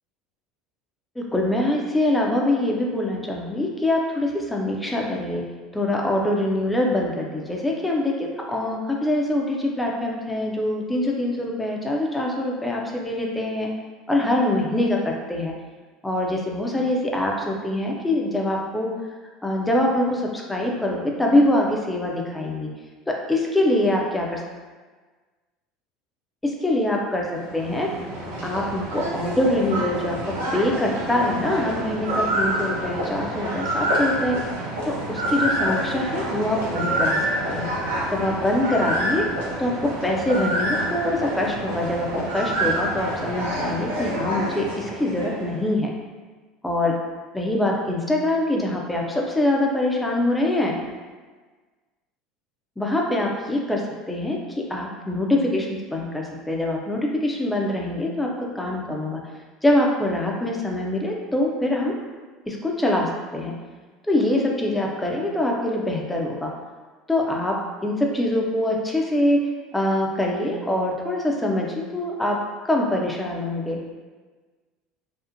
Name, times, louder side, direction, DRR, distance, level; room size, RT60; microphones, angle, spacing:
voice 1, 1.2-5.4 5.7-13.7 14.1-15.5 16.0-18.9 19.4-22.7 23.1-24.4 26.4-27.3 27.5-27.9 28.4-34.4 34.8-37.2 37.5-37.7 38.1-39.3 39.6-42.1 42.3-45.9 46.6-46.9 47.3-50.7 52.8-53.8 54.1-59.2 59.6-61.9 62.5-63.5 64.0-66.5 67.1-69.4 69.7-72.4 72.6-73.8, left 1 dB, 10° left, -1 dB, 0.5 m, -24 dB
sound 1, 27.2-45.6, right 1 dB, 75° right, 0.5 m, -27 dB
2.6 x 2.0 x 2.6 m, 1.4 s
hypercardioid pair, 70°, 0 cm